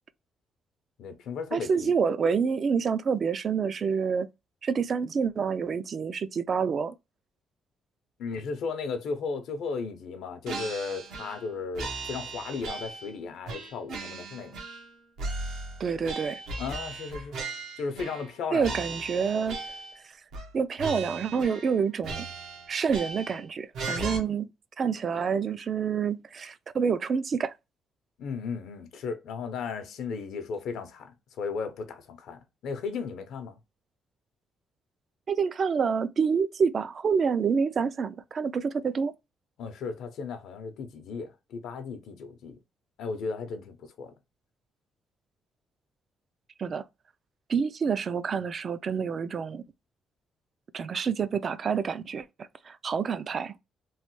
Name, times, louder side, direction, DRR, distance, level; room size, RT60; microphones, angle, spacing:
voice 1, 1.0-1.9 8.2-14.5 16.6-17.4 17.8-18.8 28.2-33.6 39.6-42.6 43.0-44.1, left 5 dB, 80° left, 0.6 m, -35 dB
voice 2, 1.5-4.3 4.6-6.9 15.8-16.4 18.5-19.6 20.0-20.1 20.5-22.3 22.7-24.5 24.8-27.5 35.3-39.2 46.6-46.8 47.5-49.6 50.7-53.6, right 6 dB, 50° right, 0.3 m, -28 dB
sound 1, 10.5-11.5 11.7-13.1 13.5-14.9 15.2-18.3 18.6-20.0 20.3-20.5 20.8-21.8 22.0-23.4 23.7-24.2, right 3 dB, 85° right, 0.8 m, -37 dB
3.1 x 2.1 x 3.0 m
cardioid pair, 90°, 0 cm